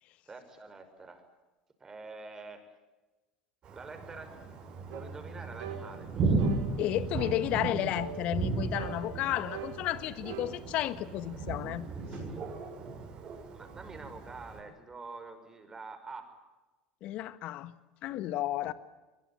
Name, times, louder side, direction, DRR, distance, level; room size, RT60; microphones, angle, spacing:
voice 1, 0.3-1.2 1.8-2.6 3.7-4.3 4.8-6.5 13.5-16.3, right 3 dB, 20° right, 7 dB, 5.8 m, -46 dB
Thunder, 3.6-14.6, right 3 dB, 40° right, 6.9 m, -35 dB
sound 1, 4.9-5.1 5.6-5.8 6.4-6.6 7.2-7.4 7.9-8.2 8.7-9.8 10.3-10.5, right 9 dB, 70° right, 6.8 m, -41 dB
voice 2, 6.8-11.8 17.0-17.7 18.0-18.7, left 14 dB, 55° left, 14 dB, 1.5 m, -32 dB
23.0 x 22.5 x 8.7 m, 1.2 s
hypercardioid pair, 75°, 2 cm